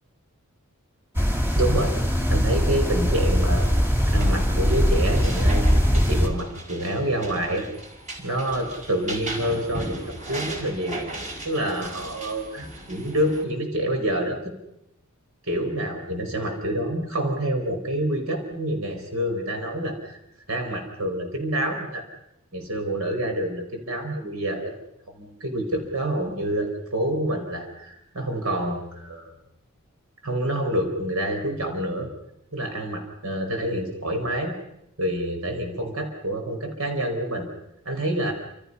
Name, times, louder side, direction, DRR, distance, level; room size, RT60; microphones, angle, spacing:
sound 1, 1.1-6.3, equal, 10° right, 2.9 m, -21 dB
voice 1, 1.5-1.9 2.3-3.7 4.1-7.7 8.2-11.0 11.4-14.5 15.5-20.2 20.5-22.0 22.5-24.7 25.1-29.3 30.2-32.1 32.5-34.6 35.0-37.5 37.8-38.3, right 1 dB, 75° right, 4 dB, 4.9 m, -27 dB
sound 2, 3.6-13.4, right 1 dB, 35° right, 5.2 m, -37 dB
28.5 x 27.5 x 5.6 m, 0.83 s
head